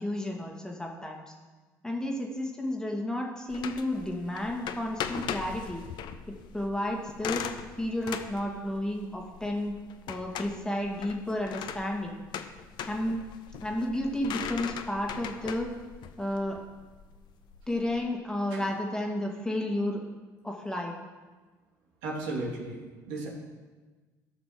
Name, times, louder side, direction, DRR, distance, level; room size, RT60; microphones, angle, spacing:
voice 1, 0.0-1.3 1.8-5.8 6.3-7.5 7.8-9.7 10.1-12.2 12.8-13.2 13.6-15.7 16.2-16.6 17.7-20.0 20.4-20.9, left 1 dB, 10° left, 0 dB, 2.1 m, -32 dB
sound 1, 3.5-18.0, left 8 dB, 60° left, 0.8 m, -40 dB
voice 2, 22.0-22.8 23.1-23.3, right 2 dB, 85° right, -2 dB, 2.6 m, -34 dB
13.5 x 6.0 x 6.0 m, 1.3 s
supercardioid pair, 80°, 8 cm